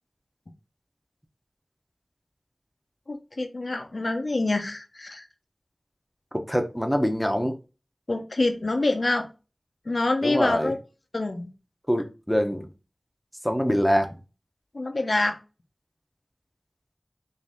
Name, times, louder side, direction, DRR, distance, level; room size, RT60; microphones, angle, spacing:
voice 1, 3.1-5.3 8.1-9.3 9.9-10.8 11.1-11.5 14.7-15.4, left 2 dB, 70° left, 0.7 m, -26 dB
voice 2, 6.3-7.6 10.2-10.7 11.9-12.7 13.4-14.2, equal, 5° left, 0.8 m, -24 dB
4.1 x 2.7 x 3.5 m
wide cardioid pair, 50°, 0 cm